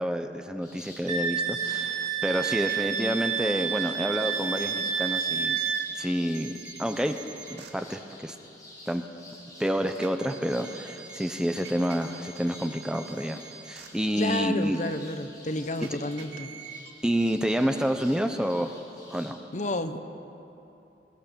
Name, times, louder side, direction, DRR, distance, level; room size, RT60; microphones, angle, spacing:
voice 1, 0.0-5.6 6.0-6.5 6.8-7.2 7.5-8.4 8.9-9.0 9.6-14.8 17.0-18.8 19.1-19.4, equal, 5° right, 6 dB, 0.8 m, -28 dB
sound 1, 0.6-19.3, left 1 dB, 20° left, 5.7 m, -50 dB
Wind instrument woodwind instrument, 1.1-5.9, right 7 dB, 45° right, 2.2 m, -29 dB
sound 2, 2.6-2.8 4.6-4.7 5.6-5.7 6.3-7.7 9.9-13.9 15.8-16.9, right 7 dB, 80° right, 2.1 m, -45 dB
voice 2, 14.2-16.5 19.5-20.0, left 1 dB, 45° left, 8 dB, 1.0 m, -30 dB
22.0 x 18.5 x 7.0 m, 2.9 s
head